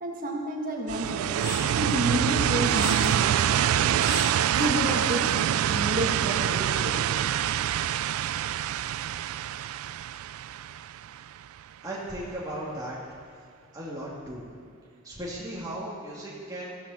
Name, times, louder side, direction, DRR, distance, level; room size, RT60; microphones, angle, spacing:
voice 1, 0.0-1.4 1.6-7.2, equal, 40° right, -1 dB, 1.6 m, -31 dB
sound 1, 0.9-11.6, right 10 dB, 85° right, 0.3 m, -26 dB
sound 2, 1.4-1.8 2.4-3.2 3.5-3.6 4.0-4.7, equal, 20° left, 2.3 m, -35 dB
voice 2, 11.8-13.0 13.7-14.4 15.0-16.8, right 1 dB, 15° right, -5 dB, 2.6 m, -36 dB
14.0 x 13.5 x 4.3 m, 2.3 s
head